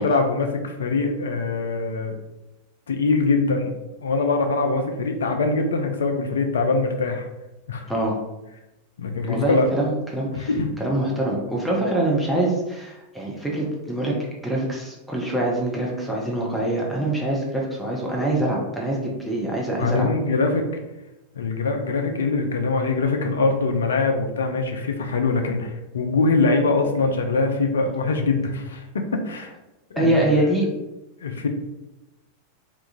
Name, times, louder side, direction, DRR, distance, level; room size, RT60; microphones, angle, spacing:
voice 1, 0.0-2.1 2.9-3.7 4.0-7.3 7.7-7.9 9.0-9.7 10.4-10.7 19.8-20.7 21.3-29.5 29.9-30.2 31.2-31.5, left 3 dB, 65° left, 5 dB, 0.4 m, -23 dB
voice 2, 9.2-10.5 10.8-14.1 14.4-20.1 30.0-30.7, right 1 dB, ahead, -4 dB, 0.6 m, -24 dB
2.8 x 2.3 x 2.5 m, 0.98 s
figure-of-eight pair, 90°, 0 cm